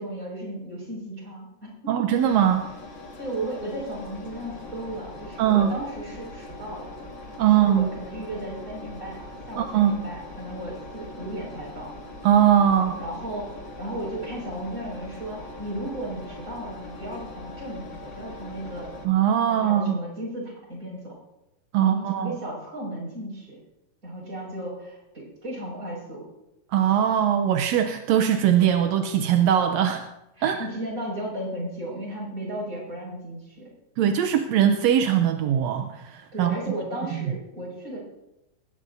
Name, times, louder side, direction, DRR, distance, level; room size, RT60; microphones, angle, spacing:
voice 1, 0.0-1.9 3.2-6.9 7.5-11.9 12.9-18.9 19.5-21.1 21.8-23.6 24.0-26.2 30.4-33.7 36.3-38.0, right 1 dB, 25° right, -3 dB, 6.0 m, -35 dB
voice 2, 1.9-2.7 5.4-5.8 7.4-7.9 9.6-10.0 12.2-13.0 19.0-19.9 21.7-22.3 26.7-30.0 30.4-30.6 34.0-36.6 37.1-37.3, right 9 dB, 75° right, 6 dB, 1.7 m, -21 dB
Engine, 2.1-19.1, left 2 dB, 40° left, 2.1 m, -41 dB
20.0 x 17.5 x 2.7 m, 0.90 s
omnidirectional pair, 3.7 m